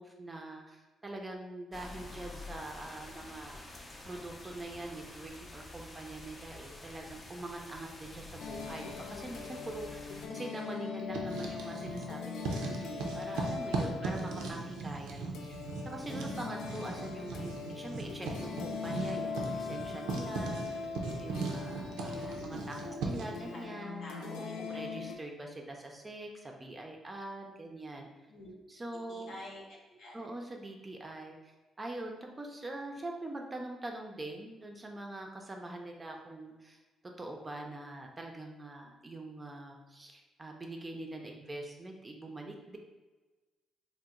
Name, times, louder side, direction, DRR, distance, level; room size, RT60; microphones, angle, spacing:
voice 1, 0.0-20.9 21.2-22.8 23.0-28.1 28.7-29.4 30.1-36.8 37.2-42.8, right 2 dB, 25° right, 1 dB, 0.4 m, -44 dB
sound 1, 1.7-10.3, left 2 dB, 30° left, 0.5 m, -48 dB
sound 2, 8.4-25.2, left 5 dB, 90° left, 0.3 m, -41 dB
Writing, 11.0-12.1 12.4-23.4, right 3 dB, 90° right, 0.4 m, -38 dB
voice 2, 14.0-14.3 22.0-23.7 24.0-24.5 24.9-25.1 28.3-28.5 29.1-30.3, left 1 dB, 65° left, -2 dB, 0.8 m, -48 dB
2.8 x 2.0 x 3.6 m, 1.2 s
cardioid pair, 90°, 0 cm